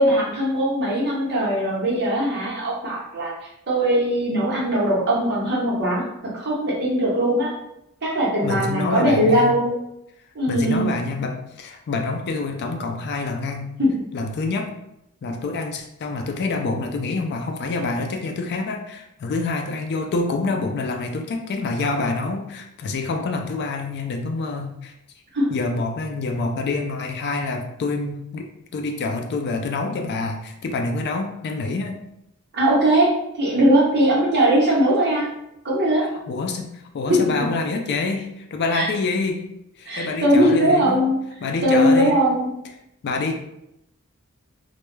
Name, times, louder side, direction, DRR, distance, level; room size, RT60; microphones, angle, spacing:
voice 1, 0.0-3.3 3.7-7.5 8.0-9.8 10.3-10.9 13.8-14.1 25.3-25.5 32.5-35.3 35.6-36.1 37.1-37.2 38.7-38.9 39.9-41.2 41.6-42.5, equal, 50° right, -4 dB, 0.8 m, -20 dB
voice 2, 8.4-9.5 10.5-13.7 14.1-14.7 15.2-24.9 25.5-28.5 28.7-32.0 36.3-39.4 39.8-41.0 41.4-42.1 43.0-43.4, left 3 dB, 50° left, 3 dB, 0.3 m, -26 dB
2.2 x 2.1 x 3.0 m, 0.82 s
head